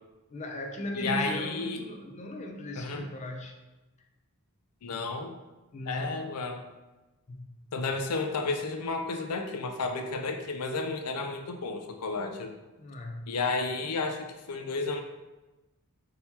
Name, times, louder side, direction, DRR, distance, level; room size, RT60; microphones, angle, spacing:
voice 1, 0.3-3.5 5.7-6.2 7.3-7.6 12.8-13.3, left 1 dB, 30° left, 3 dB, 0.4 m, -37 dB
voice 2, 0.9-1.8 2.8-3.0 4.8-5.4 5.9-6.6 7.7-12.5 13.3-15.0, left 3 dB, 90° left, 5 dB, 0.5 m, -32 dB
3.8 x 2.8 x 4.1 m, 1.1 s
head